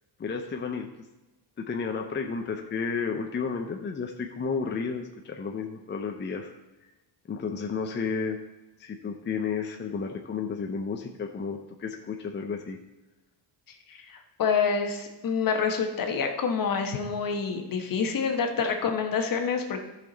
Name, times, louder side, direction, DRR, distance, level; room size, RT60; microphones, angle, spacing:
voice 1, 0.2-1.1 1.6-6.5 7.3-8.4 8.8-12.8, left 5 dB, 25° left, 3 dB, 0.6 m, -32 dB
voice 2, 13.9-19.8, left 5 dB, 50° left, 5 dB, 1.2 m, -27 dB
13.5 x 5.9 x 4.0 m, 1.1 s
cardioid pair, 135°, 43 cm